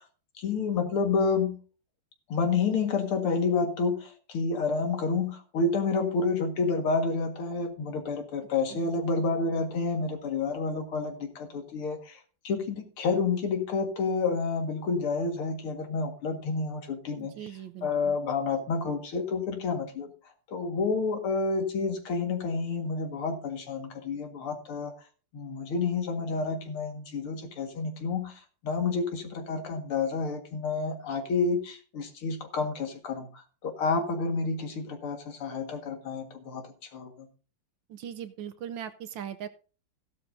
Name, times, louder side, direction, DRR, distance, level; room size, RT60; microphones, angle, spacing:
voice 1, 0.4-1.6 2.3-17.3 17.8-20.1 20.5-24.9 25.3-37.3, left 4 dB, 80° left, 4 dB, 2.6 m, -29 dB
voice 2, 17.2-18.2 37.9-39.5, right 9 dB, 70° right, 10 dB, 1.3 m, -40 dB
15.5 x 12.0 x 2.7 m, 0.37 s
omnidirectional pair, 2.4 m